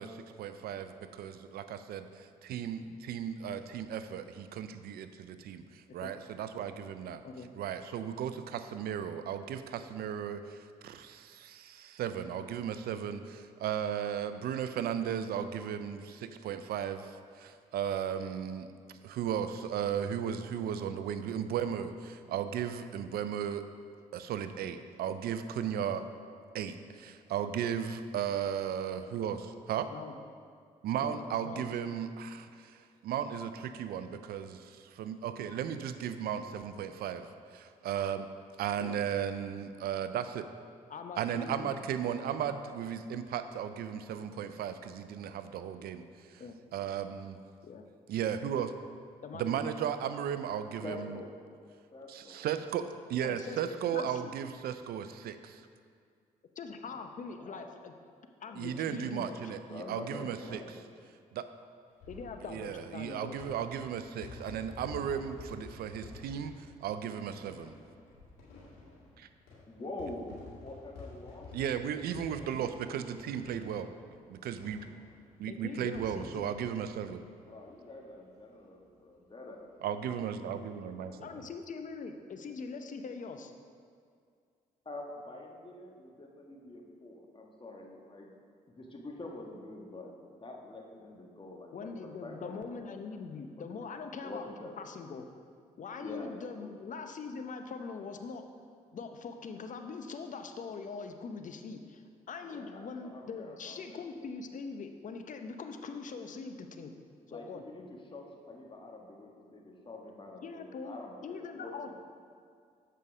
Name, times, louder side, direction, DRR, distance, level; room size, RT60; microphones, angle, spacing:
voice 1, 0.0-7.2 7.5-23.6 24.1-26.0 26.5-29.9 30.8-37.3 37.5-38.3 38.6-40.5 41.2-46.0 46.3-46.4 46.7-47.4 48.1-48.7 49.3-51.2 52.1-55.7 58.5-60.6 61.3-61.4 62.5-67.7 69.2-69.3 71.5-73.9 74.3-74.9 75.4-77.2 79.8-81.3, right 8 dB, 75° right, 10 dB, 0.5 m, -35 dB
voice 2, 31.0-31.7 38.8-39.0 40.9-41.7 46.4-46.6 47.6-47.8 49.2-49.6 53.2-53.6 53.9-54.2 56.6-57.9 58.4-59.4 62.1-63.6 75.5-76.5 81.2-83.5 91.7-94.5 94.8-95.3 95.8-98.4 98.9-106.9 107.3-107.6 110.4-111.0 111.2-111.9, left 5 dB, 50° left, 6 dB, 0.7 m, -42 dB
voice 3, 50.8-51.3 51.9-52.4 56.9-57.0 57.3-57.8 58.4-60.7 69.7-71.5 72.3-72.7 77.4-79.7 80.4-81.1 84.8-88.3 88.7-90.1 90.4-93.2 93.7-94.7 96.0-96.7 102.4-104.0 105.6-106.0 107.3-111.9, left 2 dB, 30° left, 0 dB, 1.4 m, -46 dB
sound 1, 61.9-77.9 78.2-78.3 78.5-78.6 79.9-80.1, left 3 dB, 85° left, 2.1 m, -51 dB
7.5 x 5.6 x 4.8 m, 2.2 s
supercardioid pair, 50°, 16 cm